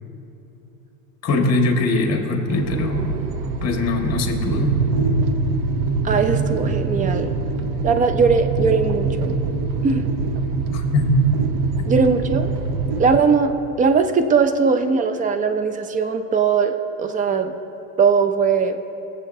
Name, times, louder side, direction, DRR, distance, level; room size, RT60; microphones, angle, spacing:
voice 1, 1.2-3.0 3.6-4.8 10.7-11.1, left 2 dB, 35° left, 2 dB, 1.6 m, -21 dB
sound 1, 2.5-13.2, right 4 dB, 60° right, 0.8 m, -24 dB
voice 2, 6.0-7.3 7.8-9.4 9.8-10.2 11.8-12.5 13.0-17.5 18.0-18.8, right 5 dB, 20° right, 8 dB, 0.3 m, -19 dB
19.5 x 7.6 x 2.7 m, 2.9 s
supercardioid pair, 115°, 47 cm